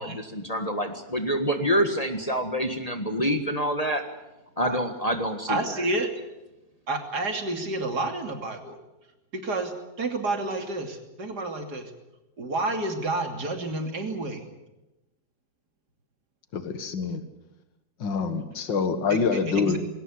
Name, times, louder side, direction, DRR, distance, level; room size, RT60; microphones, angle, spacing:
voice 1, 0.0-4.0 4.6-5.8, equal, 20° left, 6 dB, 1.6 m, -27 dB
voice 2, 5.5-6.1 6.9-8.8 9.3-11.9 12.4-14.4 19.1-19.8, right 2 dB, 60° right, 5 dB, 3.3 m, -30 dB
voice 3, 16.5-17.2 18.0-19.8, left 5 dB, 80° left, 9 dB, 2.4 m, -26 dB
21.0 x 18.0 x 9.8 m, 0.98 s
omnidirectional pair, 2.0 m